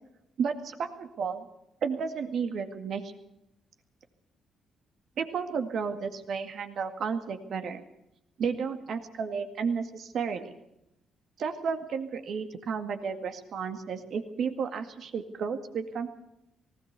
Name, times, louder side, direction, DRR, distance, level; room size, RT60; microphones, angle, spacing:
voice 1, 0.4-1.5 1.8-3.1 5.2-7.8 8.4-10.5 11.4-16.1, right 6 dB, 65° right, 7 dB, 2.0 m, -32 dB
18.5 x 16.5 x 8.3 m, 0.85 s
cardioid pair, 90°, 0 cm